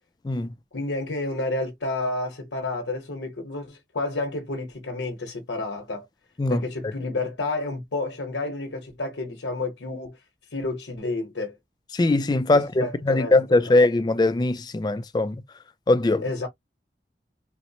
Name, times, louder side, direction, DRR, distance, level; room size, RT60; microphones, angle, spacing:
voice 1, 0.7-6.1 6.5-10.2 10.5-11.6 12.8-13.3 13.7-13.8 16.2-16.5, left 2 dB, 90° left, 1.0 m, -30 dB
voice 2, 6.4-6.9 11.9-15.4 15.9-16.2, left 2 dB, 25° left, 0.3 m, -21 dB
4.2 x 2.0 x 2.7 m
head